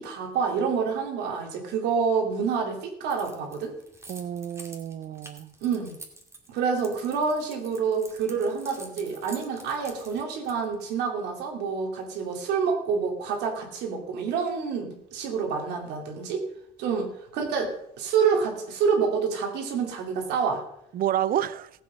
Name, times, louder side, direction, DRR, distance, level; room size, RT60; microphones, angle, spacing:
voice 1, 0.0-3.8 5.6-6.0 6.5-16.4 16.8-20.6, right 5 dB, 85° right, 2.7 m, -27 dB
Keys jangling, 3.1-10.8, right 2 dB, 15° right, 2.2 m, -47 dB
voice 2, 4.1-5.5 20.9-21.7, right 11 dB, 60° right, 0.7 m, -29 dB
16.0 x 7.6 x 5.4 m
cardioid pair, 110°, 17 cm